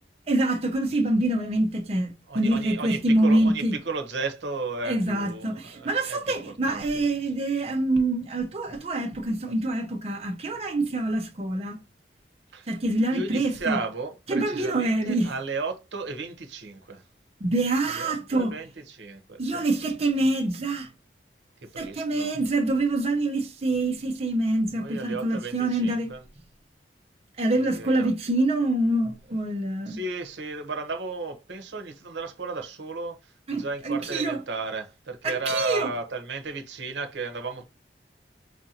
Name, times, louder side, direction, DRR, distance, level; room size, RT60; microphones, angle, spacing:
voice 1, 0.3-3.8 4.8-11.8 12.7-13.8 14.3-15.3 17.4-18.5 19.4-20.9 21.8-26.1 27.4-30.0 33.5-34.4 35.2-35.9, right 2 dB, 35° right, 0.5 m, -25 dB
voice 2, 2.3-6.4 6.7-7.0 12.5-12.7 13.1-17.0 17.9-19.6 21.7-22.3 24.7-26.2 27.6-28.1 29.9-33.2 33.5-37.6, right 3 dB, 80° right, 0.7 m, -34 dB
4.8 x 2.5 x 2.8 m
head